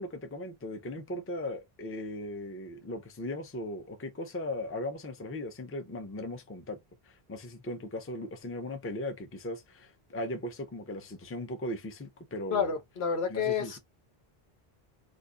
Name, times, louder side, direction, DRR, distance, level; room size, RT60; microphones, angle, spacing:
voice 1, 0.0-6.8 7.0-12.7 13.3-13.8, left 1 dB, 20° left, 0.4 m, -38 dB
voice 2, 12.5-13.8, left 6 dB, 90° left, 1.2 m, -29 dB
2.5 x 2.5 x 3.6 m
omnidirectional pair, 1.0 m